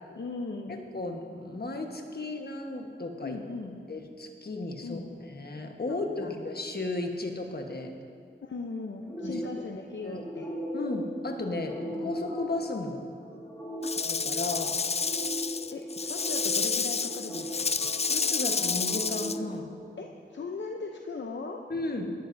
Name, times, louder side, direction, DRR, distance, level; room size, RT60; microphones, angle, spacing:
voice 1, 0.1-0.8 3.2-3.8 4.8-5.1 5.9-6.4 8.4-10.5 11.8-12.3 13.8-13.9 15.7-17.9 20.0-21.6, left 3 dB, 70° left, 2 dB, 0.7 m, -39 dB
voice 2, 0.9-3.4 3.9-5.0 5.3-7.9 9.2-9.4 10.0-10.2 10.7-13.0 14.1-14.8 18.1-19.7 21.7-22.1, left 2 dB, 55° left, 3 dB, 1.3 m, -34 dB
sound 1, 9.1-20.4, equal, 10° left, 2.9 m, -39 dB
Rattle / Rattle (instrument), 13.8-19.4, left 5 dB, 30° left, 0.4 m, -30 dB
18.0 x 12.0 x 2.7 m, 2.2 s
wide cardioid pair, 65°, 20 cm